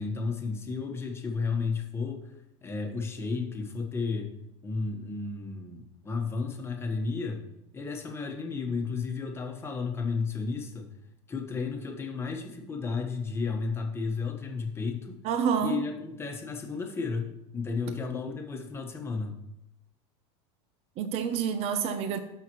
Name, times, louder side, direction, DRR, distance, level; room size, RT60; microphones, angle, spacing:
voice 1, 0.0-2.3 2.6-4.3 4.6-7.4 7.7-10.9 11.3-15.2 15.6-19.4, left 4 dB, 15° left, 3 dB, 1.3 m, -33 dB
voice 2, 15.2-15.8 21.0-22.2, right 7 dB, 45° right, 9 dB, 0.8 m, -28 dB
17.5 x 5.9 x 3.1 m, 0.88 s
supercardioid pair, 145°, 15 cm